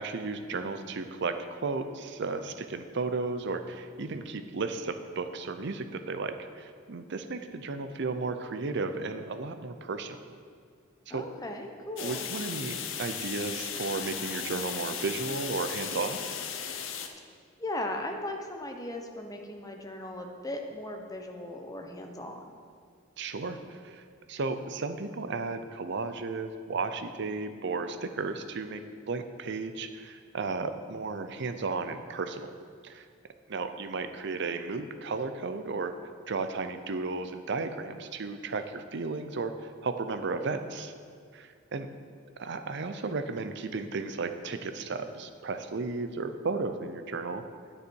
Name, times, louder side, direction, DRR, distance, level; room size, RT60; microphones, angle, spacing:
voice 1, 0.0-10.2 11.1-11.2 12.0-16.2 23.2-24.0 24.3-32.5 32.8-33.1 33.5-35.9 36.3-39.5 39.8-40.9 41.3-41.9 42.4-47.4, right 3 dB, 60° right, 9 dB, 0.6 m, -34 dB
voice 2, 11.1-12.3 17.6-22.5, left 1 dB, 20° left, 3 dB, 1.0 m, -37 dB
sound 1, 12.0-17.1, left 7 dB, 80° left, 0.8 m, -36 dB
9.9 x 9.5 x 4.6 m, 2.1 s
head